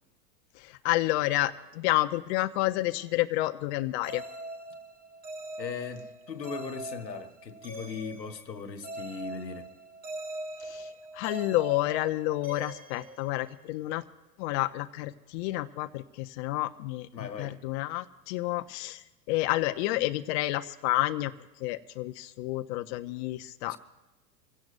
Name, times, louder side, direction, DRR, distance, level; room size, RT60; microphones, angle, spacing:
voice 1, 0.5-4.2 10.6-14.0 14.4-21.3 21.6-23.8, left 17 dB, 45° left, 0.7 m, -30 dB
sound 1, 4.0-13.8, right 1 dB, 15° right, 1.5 m, -42 dB
voice 2, 5.6-9.7 17.1-17.6 23.7-23.8, left 5 dB, 90° left, 1.4 m, -38 dB
25.0 x 16.5 x 2.6 m
hypercardioid pair, 100°, 49 cm